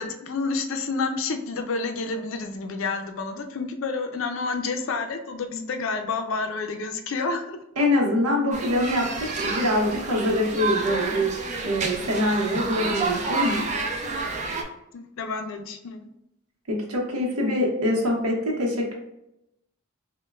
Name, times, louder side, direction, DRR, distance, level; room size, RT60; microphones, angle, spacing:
voice 1, 0.0-7.6 14.9-16.0, left 4 dB, 65° left, 6 dB, 0.4 m, -29 dB
voice 2, 7.8-11.3 11.6-13.6 16.7-18.9, left 1 dB, 85° right, -1 dB, 0.8 m, -24 dB
sound 1, 8.5-14.6, right 3 dB, 30° right, 0.4 m, -29 dB
5.2 x 2.1 x 2.3 m, 0.84 s
head